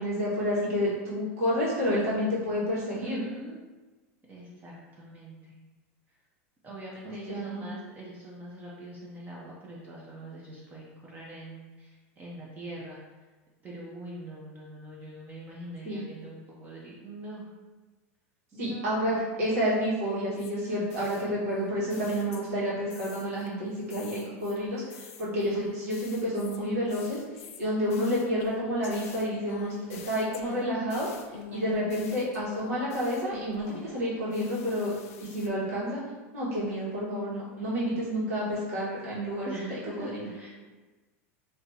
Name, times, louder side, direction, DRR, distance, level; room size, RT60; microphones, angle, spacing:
voice 1, 0.0-3.2 7.0-7.7 15.8-16.0 18.6-27.2 27.6-31.1 31.5-36.0 36.3-40.3, equal, 90° right, -7 dB, 1.5 m, -30 dB
voice 2, 2.8-3.6 4.3-5.6 6.6-13.3 13.6-17.5 18.5-19.2 39.5-40.5, right 1 dB, 20° right, -5 dB, 0.6 m, -43 dB
sound 1, 20.3-22.6 22.9-23.5 23.9-34.0 34.3-35.5, left 7 dB, 80° left, 0.4 m, -45 dB
3.3 x 2.7 x 2.7 m, 1.3 s
supercardioid pair, 130°, 8 cm